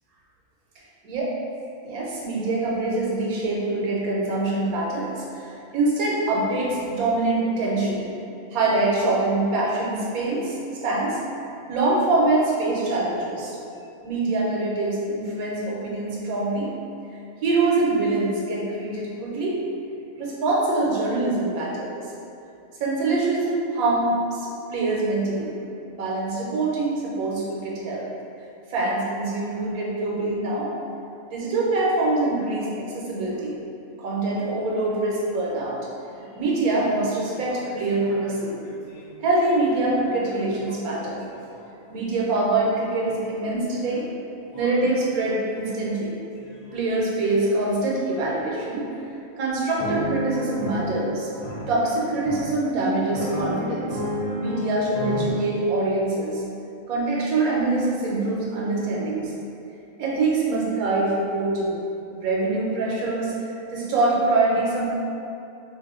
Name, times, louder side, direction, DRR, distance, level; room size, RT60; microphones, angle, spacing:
voice 1, 1.8-8.1 8.5-10.6 10.8-11.2 11.7-13.6 14.0-16.7 17.4-19.6 20.2-22.1 22.8-25.5 25.9-28.1 28.7-30.7 31.3-33.6 34.0-35.8 36.4-38.5 39.2-41.2 41.9-44.1 44.5-46.2 46.7-48.8 49.4-51.3 51.7-54.0 54.4-56.4 56.9-59.3 60.0-61.8 62.1-64.9, right 2 dB, 85° right, -5 dB, 1.1 m, -24 dB
sound 1, 36.8-36.9 37.3-41.6 43.0-43.1 43.8-44.0 44.5-44.9 45.5-45.9 46.5-46.8 47.3-47.5 48.1-48.3 48.9-49.1 49.8-55.3, equal, 80° left, 1.1 m, -32 dB
2.8 x 2.0 x 3.5 m, 2.6 s
omnidirectional pair, 1.5 m